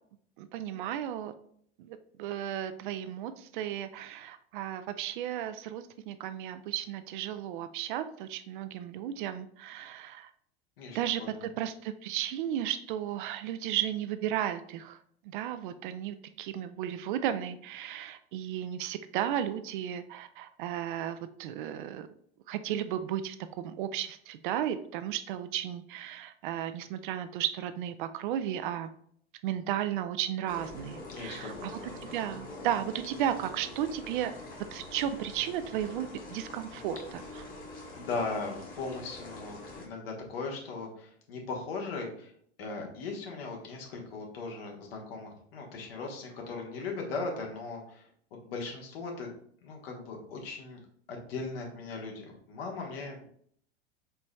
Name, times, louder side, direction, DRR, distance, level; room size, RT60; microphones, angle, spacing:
voice 1, 0.4-1.3 1.8-10.3 10.9-15.0 15.2-22.1 22.5-28.9 29.4-34.3 34.7-37.4, right 10 dB, 50° right, 11 dB, 0.4 m, -34 dB
voice 2, 10.8-11.5 31.1-32.0 37.4-37.5 37.9-42.3 42.6-49.3 49.6-50.8 51.1-53.3, left 3 dB, 65° left, 0 dB, 1.3 m, -38 dB
sound 1, 30.5-39.9, left 2 dB, 25° left, 1.2 m, -45 dB
4.5 x 4.0 x 2.2 m, 0.63 s
figure-of-eight pair, 85°, 32 cm